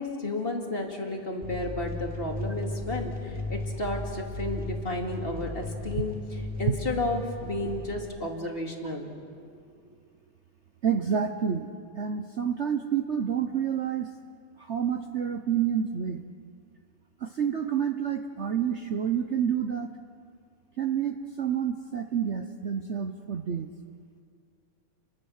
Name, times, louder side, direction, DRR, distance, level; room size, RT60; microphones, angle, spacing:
voice 1, 0.0-9.1, left 2 dB, 25° left, 1 dB, 2.6 m, -32 dB
sound 1, 1.4-8.0, left 2 dB, 5° right, 3.3 m, -36 dB
voice 2, 10.8-11.7 12.0-14.1 14.7-16.2 17.2-19.9 20.8-23.7, right 8 dB, 80° right, 6 dB, 0.6 m, -28 dB
29.5 x 22.5 x 6.5 m, 2.3 s
omnidirectional pair, 2.4 m